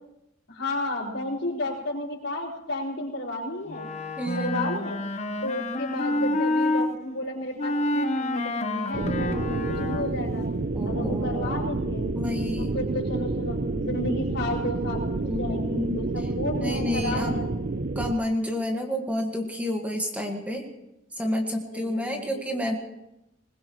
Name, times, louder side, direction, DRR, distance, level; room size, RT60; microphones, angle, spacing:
voice 1, 0.5-5.0 5.4-10.4 10.8-12.1 12.6-17.5 21.6-22.6, left 1 dB, 75° left, -5 dB, 5.0 m, -32 dB
Wind instrument woodwind instrument, 3.7-6.9 7.6-10.3, left 1 dB, 35° left, 1.0 m, -28 dB
voice 2, 4.2-4.6 10.7-11.6 12.2-12.7 15.2-16.0 16.6-17.3 18.0-20.6 21.2-22.8, left 1 dB, 10° right, 2 dB, 1.8 m, -29 dB
sound 1, 8.9-18.1, right 2 dB, 50° right, 0.6 m, -29 dB
21.0 x 21.0 x 3.2 m, 0.89 s
head